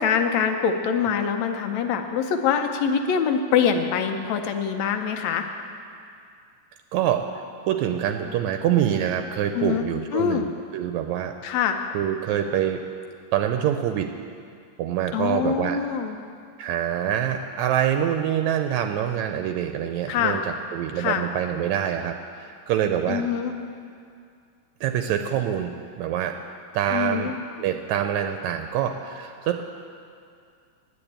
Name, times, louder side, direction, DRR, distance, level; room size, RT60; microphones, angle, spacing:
voice 1, 0.0-5.5 9.5-9.9 10.1-10.5 11.4-11.8 15.1-16.2 20.1-20.4 21.0-21.2 23.1-23.5 26.9-27.4, left 7 dB, 75° left, 6 dB, 1.9 m, -24 dB
voice 2, 6.9-7.2 7.6-10.5 10.7-11.3 11.9-12.8 13.3-14.1 14.8-15.8 16.6-20.4 20.7-23.2 24.8-25.7 26.0-26.4 26.7-27.3 27.6-29.6, right 10 dB, 80° right, 6 dB, 1.8 m, -25 dB
10.0 x 8.6 x 8.7 m, 2.3 s
omnidirectional pair, 3.4 m